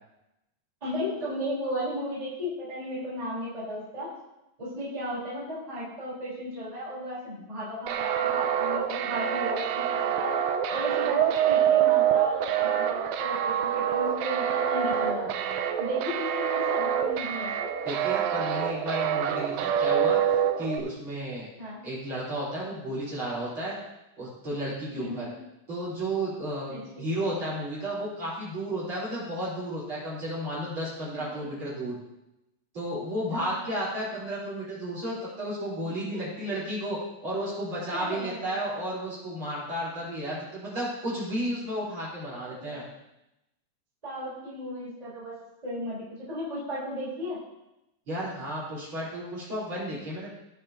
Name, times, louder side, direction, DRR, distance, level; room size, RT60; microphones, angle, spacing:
voice 1, 0.8-4.1 4.6-10.3 10.7-15.5 15.8-17.5 21.6-21.8 25.0-25.3 26.7-26.8 31.1-31.4 33.3-33.5 36.1-36.5 37.9-38.6 39.3-39.4 42.3-42.8 44.0-45.3 45.6-47.4, equal, 10° right, -9 dB, 3.9 m, -35 dB
sound 1, 7.9-20.8, right 9 dB, 85° right, 2.4 m, -26 dB
voice 2, 17.8-20.2 20.6-21.5 21.8-23.8 24.2-25.3 25.7-32.0 32.7-42.8 48.1-50.3, right 1 dB, 35° right, -9 dB, 4.9 m, -33 dB
17.5 x 7.0 x 2.8 m, 0.92 s
omnidirectional pair, 4.0 m